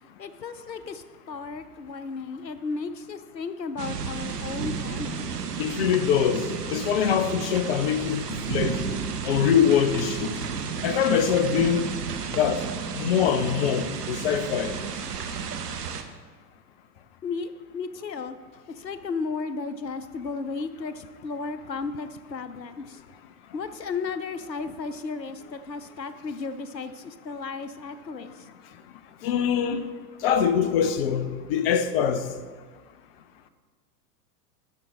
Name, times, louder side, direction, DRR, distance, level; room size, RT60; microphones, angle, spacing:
voice 1, 0.2-5.2 17.2-18.4 18.7-23.0 23.5-28.5, left 4 dB, 90° left, 0.6 m, -34 dB
sound 1, 3.8-16.0, right 6 dB, 70° right, 0.9 m, -32 dB
voice 2, 5.6-8.8 9.2-10.4 10.8-11.8 12.3-12.6 12.9-14.8 29.2-29.9 30.2-32.3, left 8 dB, 40° left, 0.6 m, -23 dB
11.0 x 6.1 x 3.8 m
figure-of-eight pair, 95°, 49 cm